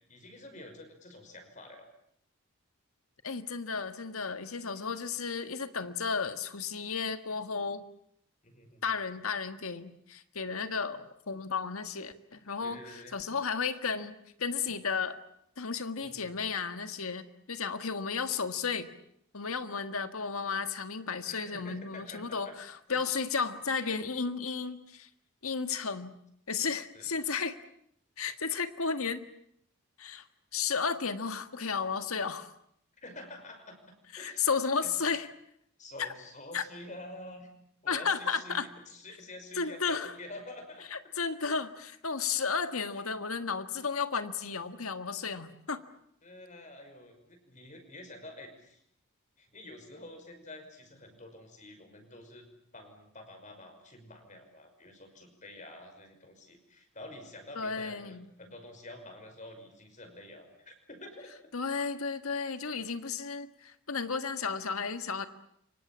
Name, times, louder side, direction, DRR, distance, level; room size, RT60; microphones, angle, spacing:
voice 1, 0.1-1.9 8.4-8.8 12.6-13.2 14.7-14.8 16.0-16.3 21.2-22.6 22.9-23.0 26.9-27.1 33.0-34.4 34.8-35.0 35.8-37.5 37.8-40.8 46.2-48.8 49.4-52.5 52.7-61.3, left 1 dB, 35° left, 5 dB, 5.7 m, -48 dB
voice 2, 3.2-7.9 8.8-15.2 15.6-18.9 19.3-25.1 25.4-26.1 26.5-27.6 28.2-29.2 30.0-30.2 30.5-32.5 34.1-35.3 36.5-36.6 37.9-38.7 39.5-40.1 40.9-45.8 57.5-58.3 61.5-65.3, left 5 dB, 80° left, 9 dB, 1.7 m, -33 dB
29.0 x 25.0 x 7.4 m, 0.71 s
head